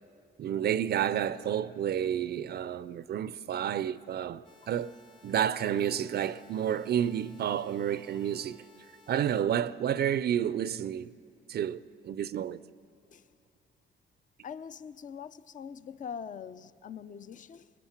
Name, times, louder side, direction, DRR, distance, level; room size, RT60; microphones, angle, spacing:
voice 1, 0.4-4.9 5.2-8.6 9.1-11.1 11.5-11.8 12.0-12.6, right 9 dB, 55° right, 0.4 m, -30 dB
sound 1, 4.4-9.4, left 2 dB, 25° left, 1.1 m, -59 dB
sound 2, 4.6-4.8 5.5-5.7 7.7-7.9 8.1-8.5, left 5 dB, 85° left, 6.6 m, -63 dB
voice 2, 14.4-17.7, left 7 dB, 40° left, 0.5 m, -43 dB
23.5 x 20.5 x 5.9 m
cardioid pair, 90°, 20 cm